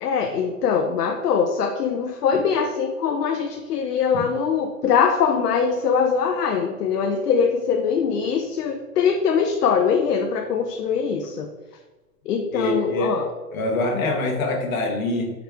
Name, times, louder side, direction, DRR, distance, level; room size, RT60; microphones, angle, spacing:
voice 1, 0.0-11.5 12.3-13.2 13.9-14.1, left 6 dB, 75° left, 4 dB, 0.6 m, -22 dB
voice 2, 12.5-13.1 13.5-15.3, left 2 dB, 60° left, 1 dB, 1.3 m, -24 dB
4.7 x 3.2 x 3.6 m, 1.2 s
hypercardioid pair, 135°, 47 cm